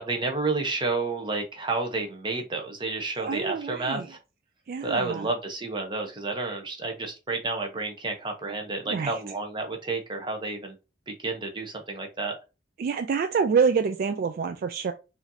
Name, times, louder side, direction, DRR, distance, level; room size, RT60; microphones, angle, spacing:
voice 1, 0.0-4.2 4.8-10.8 11.1-12.4, right 3 dB, 25° right, 0.8 m, -30 dB
voice 2, 3.2-4.1 4.7-5.3 8.9-9.2 12.8-14.9, right 5 dB, 50° right, 0.3 m, -26 dB
5.0 x 2.6 x 2.7 m
head